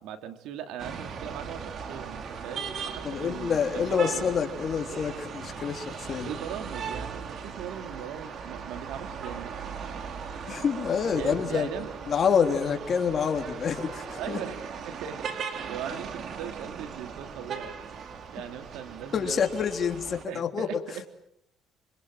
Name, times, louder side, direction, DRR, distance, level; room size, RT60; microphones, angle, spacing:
voice 1, 0.0-4.3 6.3-9.5 11.2-12.0 14.2-19.5 20.3-21.1, right 9 dB, 90° right, 8 dB, 2.9 m, -39 dB
sound 1, 0.8-20.3, right 6 dB, 55° right, 3.6 m, -38 dB
voice 2, 3.0-6.3 10.5-11.7 12.1-14.4 19.1-20.8, left 7 dB, 40° left, 5 dB, 3.5 m, -27 dB
27.0 x 26.0 x 7.8 m, 0.74 s
cardioid pair, 120°, 0 cm